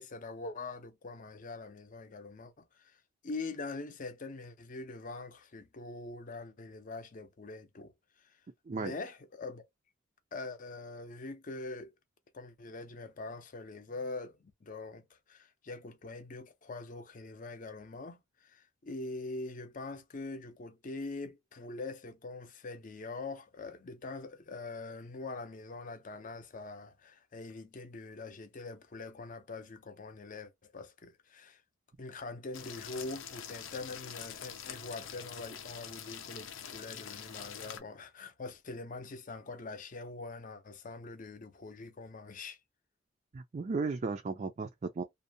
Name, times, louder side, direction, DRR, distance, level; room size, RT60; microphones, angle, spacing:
voice 1, 0.0-3.0 3.2-7.9 8.7-9.6 10.3-11.9 12.3-31.6 32.0-42.6, left 3 dB, 40° left, 0.6 m, -43 dB
sound 1, 32.5-37.8, left 8 dB, 85° left, 0.6 m, -45 dB
voice 2, 43.3-45.0, right 4 dB, 35° right, 0.4 m, -35 dB
2.6 x 2.1 x 2.7 m
head